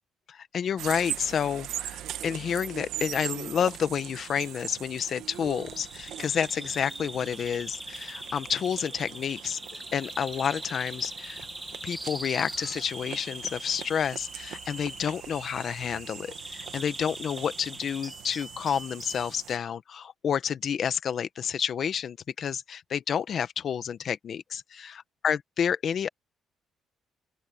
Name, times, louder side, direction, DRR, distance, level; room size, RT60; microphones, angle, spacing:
voice 1, 0.3-11.5 11.8-26.1, left 8 dB, 50° left, 1.2 m, -30 dB
sound 1, 0.8-19.6, right 12 dB, 80° right, 1.5 m, -42 dB
Bird vocalization bird call bird song, 5.3-19.3, right 1 dB, 5° right, 1.0 m, -42 dB
open air
cardioid pair, 125°, 0 cm